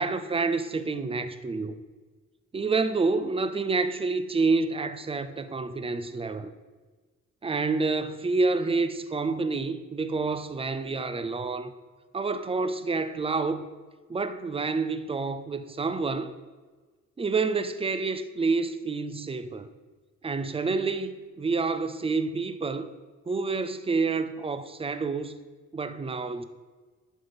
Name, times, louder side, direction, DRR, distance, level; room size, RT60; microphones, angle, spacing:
voice 1, 0.0-1.8 2.5-6.5 7.4-11.7 12.1-13.7 14.1-16.3 17.2-19.7 20.2-22.9 23.3-25.4 25.7-26.4, right 4 dB, 20° right, 0.4 m, -28 dB
11.5 x 5.2 x 5.7 m
wide cardioid pair, 180°, 31 cm